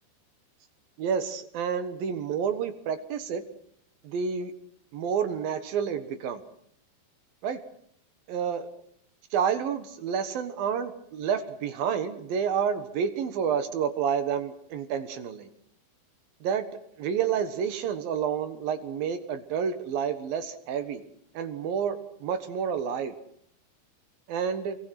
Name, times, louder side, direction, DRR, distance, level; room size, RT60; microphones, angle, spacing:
voice 1, 1.0-3.4 4.0-4.5 4.9-6.4 7.4-7.6 8.3-8.7 9.3-15.5 16.4-16.7 17.0-21.0 21.3-23.1 24.3-24.8, right 7 dB, 65° right, 11 dB, 2.8 m, -29 dB
28.5 x 23.0 x 5.9 m, 0.67 s
omnidirectional pair, 5.0 m